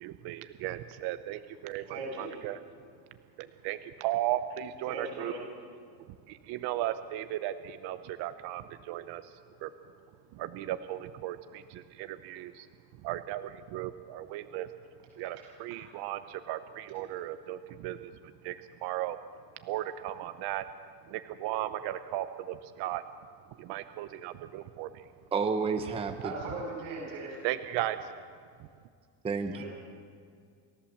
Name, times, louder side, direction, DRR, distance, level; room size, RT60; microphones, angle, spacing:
voice 1, 0.0-1.8 2.4-2.5 3.6-4.9 6.5-7.5 7.8-8.6 8.9-9.2 9.6-9.7 10.4-11.4 12.2-12.5 13.0-13.4 13.7-14.7 15.2-15.4 15.7-16.2 16.5-17.6 17.8-18.0 18.5-18.6 18.8-19.2 19.7-20.6 21.4-22.2 22.8-23.0 23.7-24.9 27.4-28.0, right 14 dB, 50° right, 10 dB, 0.8 m, -35 dB
voice 2, 1.9-2.3 4.8-5.4 15.4-15.5 15.7-15.8 26.2-27.4 27.8-27.9 29.5-29.7, right 3 dB, 90° right, -1 dB, 8.0 m, -39 dB
voice 3, 25.3-26.2 29.2-29.6, right 5 dB, 10° right, 6 dB, 0.8 m, -30 dB
29.5 x 14.5 x 7.2 m, 2.2 s
cardioid pair, 165°, 50 cm